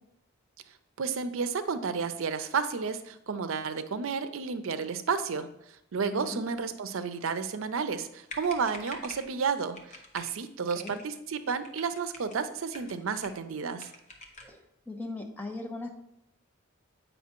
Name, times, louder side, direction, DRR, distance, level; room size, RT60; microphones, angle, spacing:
voice 1, 1.0-5.5 5.9-9.8 10.1-13.9, right 5 dB, 85° right, 11 dB, 0.5 m, -31 dB
voice 2, 6.1-6.4 10.8-11.0 14.4-15.9, left 2 dB, 10° left, 2 dB, 0.6 m, -39 dB
sound 1, 8.3-9.3 9.7-10.3 10.7-11.0 11.4-12.4 12.7-13.5 13.8-14.6, left 2 dB, 35° left, 0.9 m, -46 dB
8.3 x 5.4 x 2.9 m, 0.80 s
head